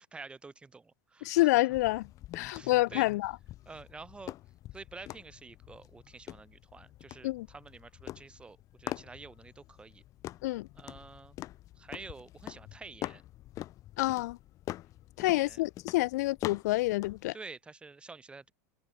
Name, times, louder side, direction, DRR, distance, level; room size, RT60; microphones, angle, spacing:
voice 1, 0.0-1.8 2.4-3.1 3.6-4.3 4.7-10.0 10.7-11.4 11.7-13.2 15.2-15.6 17.3-18.5, right 4 dB, 10° right, 6.9 m, -49 dB
voice 2, 1.2-2.1 2.3-3.3 7.2-7.5 10.4-10.7 14.0-14.4 15.2-17.3, left 19 dB, 70° left, 0.5 m, -28 dB
sound 1, 1.7-17.3, left 14 dB, 35° left, 4.8 m, -45 dB
supercardioid pair, 140°, 9 cm